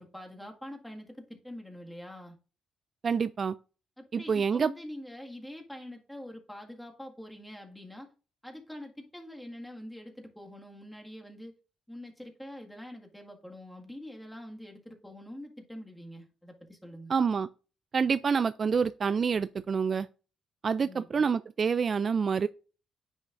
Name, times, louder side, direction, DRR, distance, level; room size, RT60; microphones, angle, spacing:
voice 1, 0.0-2.4 4.0-8.1 8.4-11.5 11.9-17.1 20.8-21.2, left 1 dB, 5° left, 1.9 m, -45 dB
voice 2, 3.0-3.6 4.1-4.7 17.1-17.5 17.9-20.1 20.6-22.5, right 6 dB, 45° right, 0.3 m, -27 dB
9.8 x 6.4 x 2.6 m
cardioid pair, 90°, 0 cm